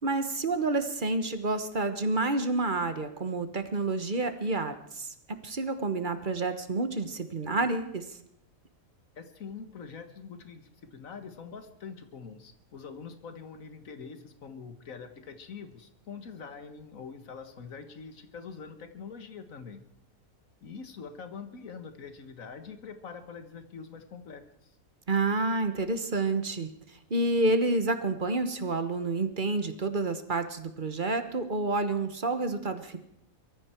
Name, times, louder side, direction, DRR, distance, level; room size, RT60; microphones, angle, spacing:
voice 1, 0.0-5.1 5.4-8.1 25.1-26.7 27.1-33.0, right 2 dB, 35° right, 9 dB, 1.3 m, -29 dB
voice 2, 9.2-19.8 20.6-24.7, left 5 dB, 70° left, 9 dB, 1.8 m, -44 dB
22.5 x 14.0 x 4.5 m, 0.74 s
omnidirectional pair, 1.5 m